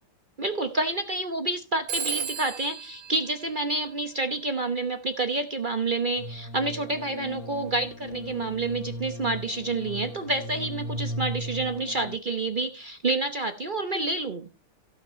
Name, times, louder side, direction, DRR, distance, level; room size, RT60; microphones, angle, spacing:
voice 1, 0.4-14.5, right 2 dB, 65° right, 7 dB, 0.4 m, -28 dB
Telephone, 1.9-4.4, right 7 dB, 50° right, 1.3 m, -35 dB
sound 1, 6.2-12.2, equal, 55° left, 1.1 m, -37 dB
16.0 x 5.9 x 4.3 m, 0.31 s
omnidirectional pair, 2.4 m